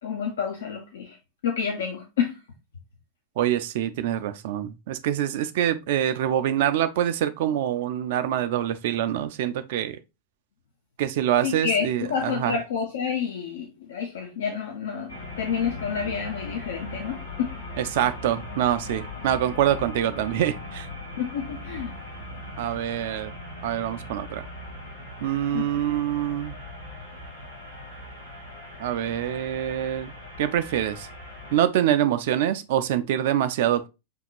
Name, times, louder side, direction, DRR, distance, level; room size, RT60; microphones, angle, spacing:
voice 1, 0.0-1.2 1.4-2.4 11.4-17.5 21.2-22.0 25.5-25.7, left 7 dB, 60° left, 0.6 m, -29 dB
voice 2, 3.4-10.0 11.0-12.5 17.9-20.9 22.6-23.3 23.6-24.5 25.2-26.6 28.8-30.1 30.4-31.1 31.5-33.9, right 11 dB, 50° right, 0.4 m, -25 dB
sound 1, 15.1-31.6, left 1 dB, 80° left, 1.2 m, -39 dB
6.1 x 2.8 x 2.3 m
figure-of-eight pair, 90°, 0 cm